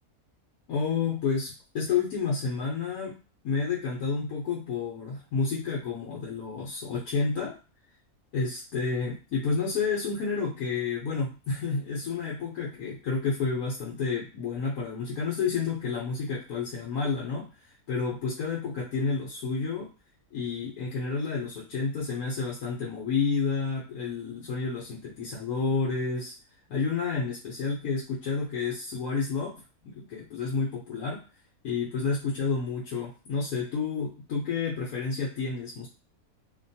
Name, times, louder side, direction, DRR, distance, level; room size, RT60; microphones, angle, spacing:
voice 1, 0.7-3.2 3.4-7.6 8.3-17.5 17.9-19.9 20.3-26.3 26.7-29.5 29.8-31.2 31.6-35.9, left 5 dB, 75° left, -3 dB, 1.2 m, -30 dB
3.0 x 2.2 x 2.6 m, 0.33 s
omnidirectional pair, 1.6 m